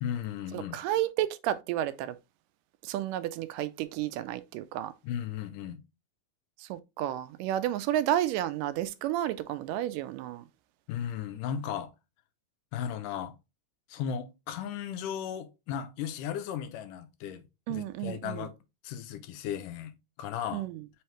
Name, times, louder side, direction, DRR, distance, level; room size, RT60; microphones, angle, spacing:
voice 1, 0.0-0.8 5.0-5.8 10.9-11.9 12.7-13.3 13.9-18.5 18.8-20.6, left 9 dB, 85° left, 2.2 m, -36 dB
voice 2, 0.5-2.2 2.8-4.9 6.6-10.5 17.7-18.5 20.5-20.8, right 12 dB, 85° right, 2.1 m, -31 dB
5.5 x 3.0 x 3.2 m
omnidirectional pair, 3.7 m